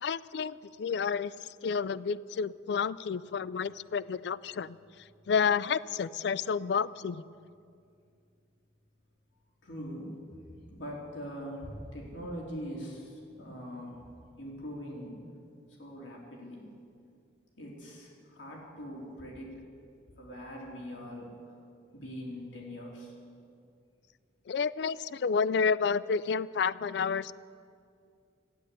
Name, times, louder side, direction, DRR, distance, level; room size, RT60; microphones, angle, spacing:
voice 1, 0.0-1.3 1.6-4.8 5.3-7.2 24.5-27.3, left 6 dB, 65° left, 19 dB, 0.3 m, -30 dB
voice 2, 9.6-10.1 10.4-14.0 14.4-15.1 15.8-16.7 17.6-19.6 20.2-21.5 21.9-23.1, equal, 80° left, -3 dB, 3.6 m, -42 dB
13.0 x 10.0 x 8.5 m, 2.4 s
head